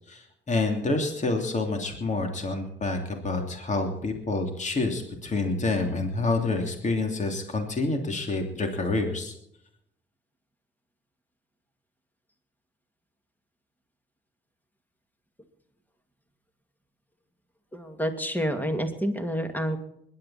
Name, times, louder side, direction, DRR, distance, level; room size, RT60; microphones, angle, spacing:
voice 1, 0.1-9.3, left 3 dB, 35° left, 4 dB, 3.0 m, -28 dB
voice 2, 17.7-19.8, equal, 10° left, 6 dB, 2.4 m, -28 dB
21.5 x 11.5 x 4.3 m, 0.75 s
cardioid pair, 90°, 20 cm